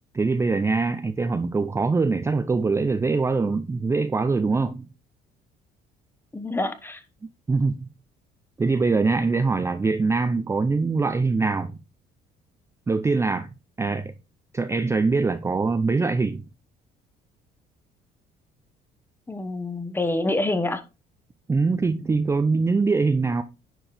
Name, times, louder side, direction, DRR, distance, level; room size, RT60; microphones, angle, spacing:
voice 1, 0.1-4.9 7.5-7.9 8.6-11.8 12.9-13.5 13.8-14.1 14.5-16.4 21.5-23.4, right 4 dB, 15° right, 0.4 m, -23 dB
voice 2, 6.3-7.0 19.3-20.8, left 2 dB, 15° left, 1.1 m, -26 dB
10.0 x 4.5 x 3.4 m
cardioid pair, 110°, 17 cm